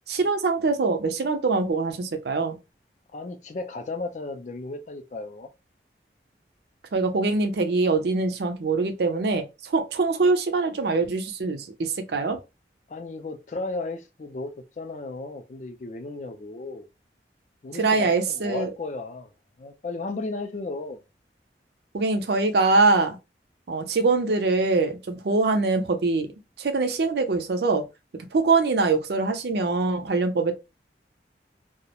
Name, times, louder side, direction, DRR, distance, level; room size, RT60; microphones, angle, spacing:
voice 1, 0.1-2.6 6.9-12.4 17.7-18.7 21.9-23.2 23.7-26.3 26.6-27.8 28.3-30.5, right 3 dB, 65° right, 0.5 m, -23 dB
voice 2, 3.1-5.5 12.9-16.9 17.6-19.3 19.6-21.0, left 3 dB, 45° left, 0.4 m, -34 dB
2.3 x 2.0 x 2.8 m
head